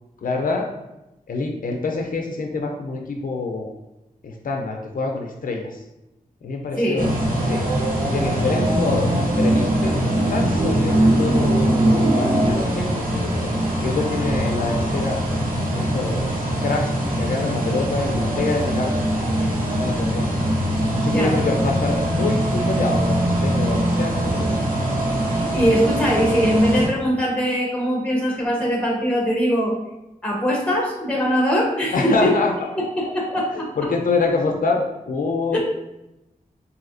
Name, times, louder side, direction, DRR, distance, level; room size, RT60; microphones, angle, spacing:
voice 1, 0.2-0.7 1.3-3.8 4.2-5.8 6.4-7.2 7.4-7.6 8.1-15.2 15.7-18.9 19.3-19.5 19.8-20.3 21.0-24.5 31.9-32.7 33.3-35.6, left 3 dB, 75° left, 2 dB, 0.5 m, -26 dB
voice 2, 6.8-7.1 21.1-21.4 25.3-29.7 30.2-32.3 33.0-33.7 35.5-35.6, equal, 10° left, -3 dB, 1.0 m, -21 dB
sound 1, 7.0-26.9, right 1 dB, 85° right, 0.8 m, -22 dB
sound 2, 20.7-26.7, right 3 dB, 15° right, 0.3 m, -31 dB
4.1 x 2.7 x 2.5 m, 0.92 s
wide cardioid pair, 110°, 14 cm